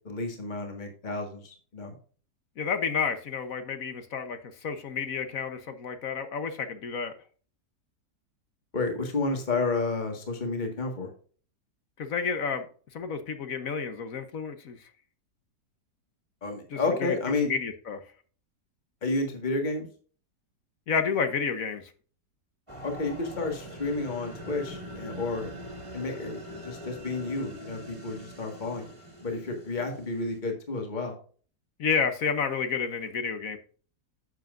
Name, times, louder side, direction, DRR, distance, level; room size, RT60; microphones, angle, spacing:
voice 1, 0.1-1.9 8.7-11.1 16.4-17.5 19.0-19.9 22.8-25.5 25.9-28.9 29.2-31.1, left 3 dB, 25° left, 3 dB, 1.8 m, -31 dB
voice 2, 2.6-7.1 12.0-12.7 12.9-14.8 16.7-17.1 17.4-18.0 20.9-21.8 31.8-33.6, left 6 dB, 55° left, 9 dB, 1.3 m, -30 dB
sound from home to horror soundscape, 22.7-30.4, equal, 20° right, 1.9 m, -43 dB
11.0 x 7.6 x 2.5 m, 0.41 s
omnidirectional pair, 1.8 m